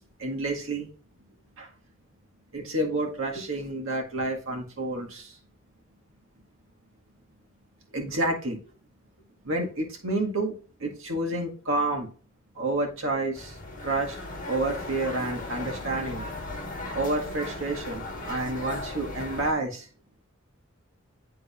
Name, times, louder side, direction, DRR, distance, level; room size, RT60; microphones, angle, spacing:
voice 1, 0.2-0.9 1.6-1.7 2.5-5.4 7.9-8.6 9.4-10.5 10.8-12.1 12.6-14.2 14.5-16.3 16.9-19.9, right 2 dB, 75° right, 1 dB, 1.7 m, -29 dB
sound 1, 13.3-19.5, left 2 dB, 40° left, 1.5 m, -37 dB
10.0 x 3.8 x 2.4 m, 0.38 s
head